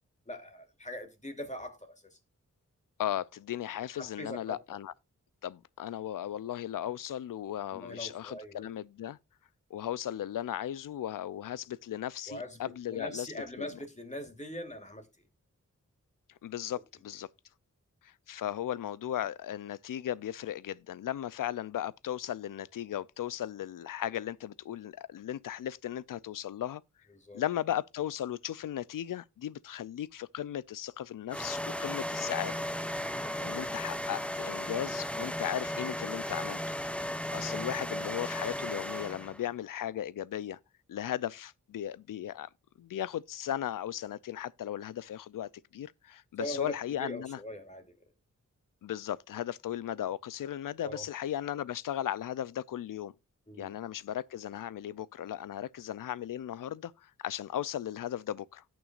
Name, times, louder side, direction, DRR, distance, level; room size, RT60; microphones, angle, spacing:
voice 1, 0.3-2.2 4.0-4.6 7.7-8.7 12.3-12.6 12.9-15.1 27.1-27.4 33.2-33.7 46.4-46.7 47.0-47.8 50.8-51.0 53.5-53.7, left 1 dB, 20° left, 2.8 m, -41 dB
voice 2, 3.0-4.9 5.4-9.2 9.7-13.3 13.6-13.7 16.4-17.3 18.0-26.8 27.3-32.6 33.4-36.8 37.3-40.6 40.9-42.5 42.8-47.4 48.8-53.1 53.6-58.6, left 11 dB, 90° left, 0.5 m, -36 dB
sound 1, 31.3-39.4, equal, 5° left, 1.0 m, -35 dB
17.0 x 6.2 x 2.5 m
cardioid pair, 55°, 31 cm